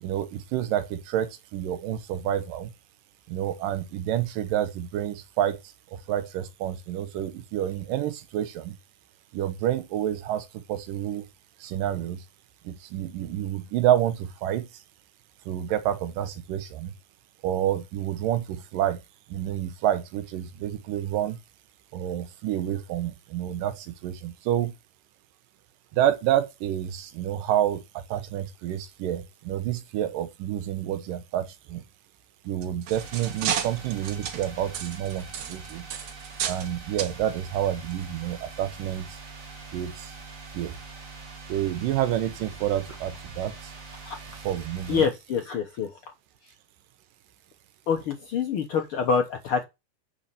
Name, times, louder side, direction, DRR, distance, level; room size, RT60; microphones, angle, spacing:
voice 1, 0.0-2.7 3.3-5.6 5.9-8.8 9.3-11.2 11.6-12.2 12.7-14.7 15.5-16.9 17.4-19.0 19.3-21.4 21.9-24.7 25.9-31.8 32.5-35.9 36.4-39.1 39.7-40.1 40.5-40.7 41.5-43.5 44.4-45.0, right 11 dB, 80° right, 2.6 m, -28 dB
sound 1, 32.5-36.7 37.0-37.2 37.9-38.0 38.5-38.6, right 9 dB, 65° right, 2.3 m, -33 dB
sound 2, 32.9-45.1, right 4 dB, 45° right, 1.1 m, -44 dB
voice 2, 44.9-45.9 47.9-49.6, left 6 dB, 80° left, 1.2 m, -26 dB
8.3 x 4.3 x 6.7 m
omnidirectional pair, 3.9 m